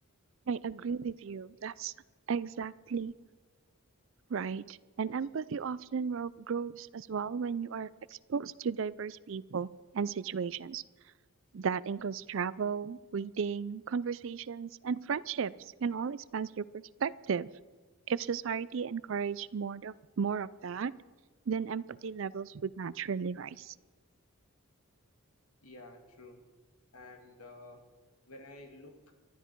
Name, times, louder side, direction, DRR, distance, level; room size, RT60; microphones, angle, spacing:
voice 1, 0.5-1.9 2.3-3.1 4.3-9.7 9.9-10.8 11.5-17.5 18.1-20.9 21.5-23.7, right 6 dB, 60° right, 19 dB, 0.4 m, -35 dB
voice 2, 25.6-26.4 26.9-27.9 28.3-29.0, left 2 dB, 85° left, 4 dB, 2.2 m, -51 dB
24.0 x 12.5 x 4.6 m, 1.3 s
head